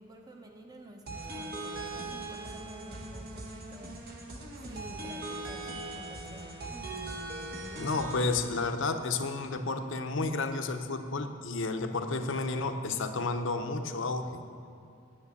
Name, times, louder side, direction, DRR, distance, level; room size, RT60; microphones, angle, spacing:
voice 1, 0.0-4.1 4.6-6.5, equal, 20° right, 3 dB, 0.9 m, -50 dB
sound 1, 1.1-8.5, right 2 dB, 45° right, 1.3 m, -40 dB
voice 2, 7.8-14.4, left 3 dB, 65° left, 7 dB, 0.7 m, -31 dB
9.7 x 7.3 x 8.3 m, 2.6 s
head